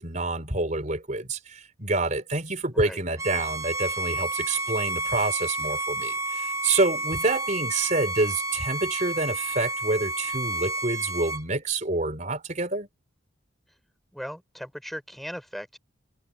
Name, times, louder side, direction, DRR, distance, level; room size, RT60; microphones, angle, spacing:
voice 1, 0.0-12.9, right 2 dB, 40° right, 4.4 m, -27 dB
Bowed string instrument, 3.2-11.4, right 2 dB, 15° right, 1.4 m, -30 dB
voice 2, 14.1-15.8, equal, ahead, 6.5 m, -38 dB
head